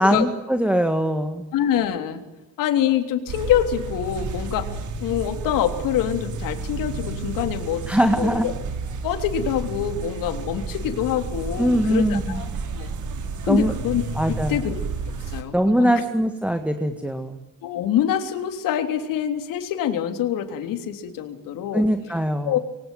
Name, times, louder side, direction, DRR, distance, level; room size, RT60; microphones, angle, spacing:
voice 1, 0.0-1.5 7.9-8.5 11.6-12.4 13.5-13.7 14.2-14.6 15.5-17.4 21.7-22.6, equal, 5° right, 7 dB, 1.7 m, -21 dB
voice 2, 1.5-2.2 2.6-4.7 5.0-7.8 8.2-8.5 9.0-12.5 12.7-12.9 13.4-14.8 15.3-15.9 17.6-21.9 22.4-22.6, left 10 dB, 85° left, 7 dB, 3.6 m, -25 dB
sound 1, 3.3-15.4, right 4 dB, 65° right, 4.4 m, -31 dB
25.5 x 24.0 x 9.3 m, 1.0 s
cardioid pair, 130°, 32 cm